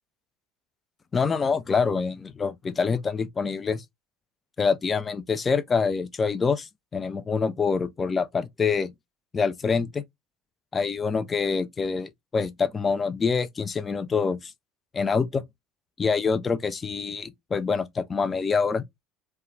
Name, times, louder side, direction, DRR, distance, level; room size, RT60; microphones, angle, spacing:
voice 1, 1.1-3.8 4.6-8.9 9.3-10.0 10.7-14.5 14.9-15.4 16.0-18.8, left 5 dB, 25° left, 0.3 m, -26 dB
2.3 x 2.2 x 2.9 m
hypercardioid pair, 70°, 0 cm